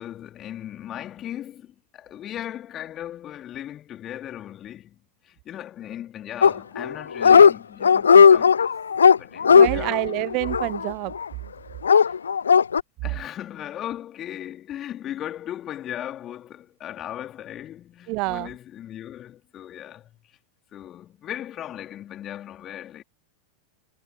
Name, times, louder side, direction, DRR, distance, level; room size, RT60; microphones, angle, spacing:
voice 1, 0.0-5.0 5.2-8.7 9.2-10.1 12.1-12.2 13.0-20.2 20.7-23.0, left 11 dB, 30° left, 3.8 m, -37 dB
Dog, 6.4-6.9 7.2-7.5 7.8-11.3 11.8-12.8, left 6 dB, 70° left, 0.4 m, -15 dB
voice 2, 9.5-11.1 18.1-18.5, right 27 dB, 40° right, 0.6 m, -27 dB
figure-of-eight pair, 90°, 0 cm